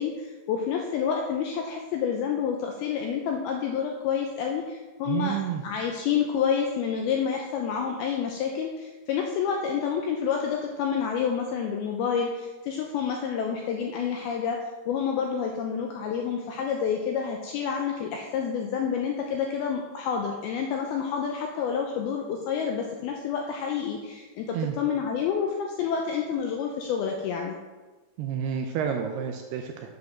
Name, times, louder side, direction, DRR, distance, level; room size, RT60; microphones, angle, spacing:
voice 1, 0.0-27.6, left 7 dB, 80° left, 1 dB, 2.2 m, -29 dB
voice 2, 5.1-5.6 24.5-24.8 28.2-29.9, right 8 dB, 80° right, 3 dB, 2.4 m, -29 dB
8.2 x 4.9 x 6.3 m, 1.3 s
omnidirectional pair, 5.1 m